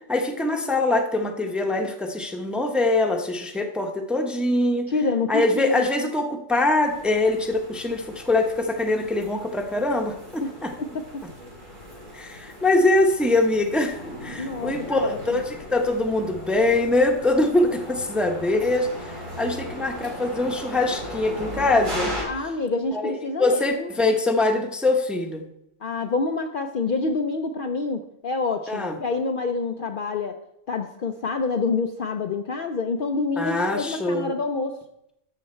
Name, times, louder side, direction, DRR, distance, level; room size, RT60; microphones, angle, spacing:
voice 1, 0.1-4.9 5.3-10.7 12.1-19.1 19.4-22.1 22.9-23.1 23.4-25.4 28.7-28.9 33.4-34.3, left 2 dB, ahead, 4 dB, 0.8 m, -23 dB
voice 2, 4.9-5.9 10.4-11.2 14.4-15.4 22.2-23.9 25.8-30.4 30.7-34.8, left 4 dB, 55° left, 5 dB, 0.7 m, -27 dB
sound 1, 6.8-22.2, equal, 85° right, 4.2 m, -37 dB
12.0 x 7.3 x 4.4 m, 0.82 s
omnidirectional pair, 1.3 m